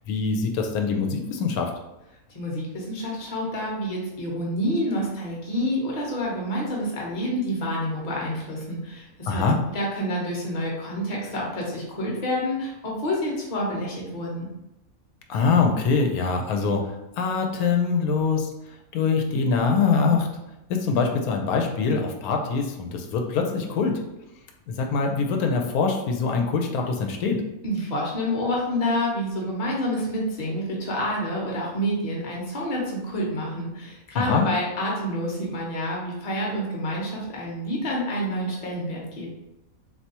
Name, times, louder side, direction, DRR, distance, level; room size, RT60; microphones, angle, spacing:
voice 1, 0.1-1.7 9.3-9.6 15.3-16.9 17.2-18.5 18.9-20.3 20.7-24.0 24.7-27.4 34.1-34.5, left 4 dB, 85° left, 3 dB, 1.1 m, -23 dB
voice 2, 2.3-14.5 27.6-39.3, equal, 35° left, -3 dB, 0.8 m, -28 dB
3.4 x 2.6 x 2.8 m, 0.95 s
omnidirectional pair, 1.5 m